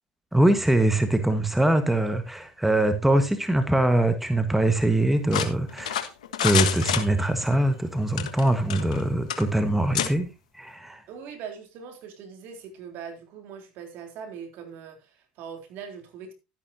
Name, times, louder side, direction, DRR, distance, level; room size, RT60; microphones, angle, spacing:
voice 1, 0.3-6.0 6.4-10.3 10.5-11.0, right 1 dB, 5° right, 1.6 m, -23 dB
sound 1, 5.3-7.6 8.1-9.0 9.3-9.4 9.9-10.1, left 9 dB, 85° left, 1.4 m, -27 dB
voice 2, 11.1-16.3, right 7 dB, 60° right, 3.6 m, -41 dB
12.5 x 11.0 x 2.8 m
hypercardioid pair, 85°, 4 cm